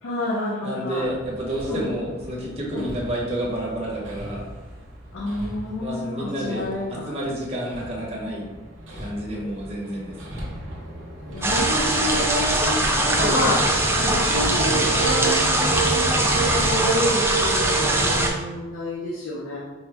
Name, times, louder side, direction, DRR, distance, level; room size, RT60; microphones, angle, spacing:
voice 1, 0.0-1.1 1.7-1.9 2.7-2.9 5.1-7.2 11.3-19.6, left 2 dB, 75° left, -5 dB, 0.6 m, -29 dB
voice 2, 0.6-4.5 5.8-6.6 6.9-8.4 9.0-10.5 13.1-13.6, right 1 dB, 30° right, -4 dB, 0.9 m, -30 dB
Hammer, 1.0-16.6, equal, 70° right, 0.8 m, -37 dB
sound 1, 11.4-18.3, right 2 dB, 10° right, 0.3 m, -21 dB
4.3 x 2.1 x 3.3 m, 1.2 s
head